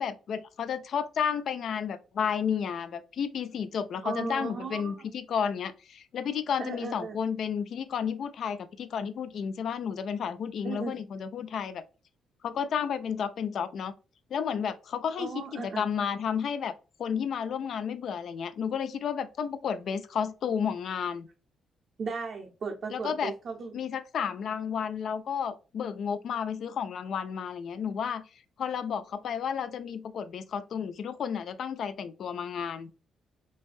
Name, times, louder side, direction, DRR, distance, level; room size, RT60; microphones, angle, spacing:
voice 1, 0.0-11.8 12.4-13.9 14.3-16.7 17.0-21.3 22.9-23.3 23.7-28.2 28.6-32.9, left 7 dB, 65° left, 0.3 m, -32 dB
voice 2, 4.0-4.9 6.6-7.2 10.6-11.0 15.2-15.8 22.0-23.7, right 4 dB, 55° right, 0.5 m, -36 dB
3.3 x 2.1 x 2.4 m
cardioid pair, 90°, 0 cm